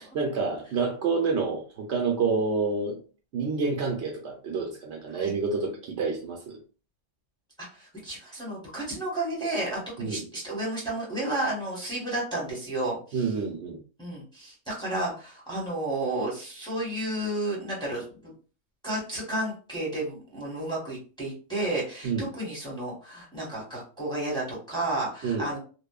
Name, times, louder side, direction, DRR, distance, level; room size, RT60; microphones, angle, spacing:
voice 1, 0.0-3.0 3.3-6.6 10.0-10.2 13.1-13.8 22.0-22.3 25.2-25.5, right 4 dB, 70° right, 1 dB, 0.8 m, -28 dB
voice 2, 7.6-13.3 14.0-18.3 18.8-25.6, right 1 dB, 5° left, -4 dB, 0.9 m, -32 dB
2.9 x 2.0 x 2.2 m, 0.37 s
omnidirectional pair, 1.3 m